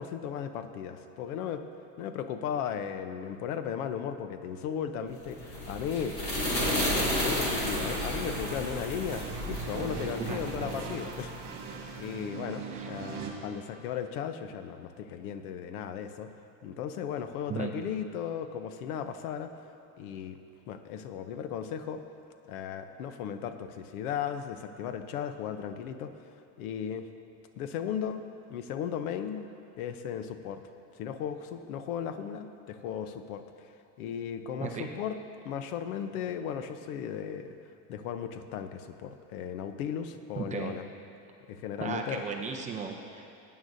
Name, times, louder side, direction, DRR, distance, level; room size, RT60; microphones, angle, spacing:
voice 1, 0.0-1.6 2.0-6.2 6.6-11.3 11.7-16.3 16.6-19.5 20.0-20.4 20.7-22.0 22.5-26.1 26.6-27.1 27.6-29.5 29.8-30.6 31.0-33.7 34.0-35.2 35.4-37.5 37.9-40.8 41.5-42.2, left 8 dB, 85° left, 9 dB, 0.8 m, -36 dB
sound 1, 5.2-11.8, left 1 dB, 35° left, 2.7 m, -32 dB
sound 2, 6.5-13.3, right 5 dB, 45° right, 2.0 m, -40 dB
voice 2, 34.6-34.9 40.3-40.7 41.8-43.3, right 6 dB, 20° right, 2 dB, 0.5 m, -35 dB
17.5 x 9.1 x 2.6 m, 2.5 s
supercardioid pair, 155°, 42 cm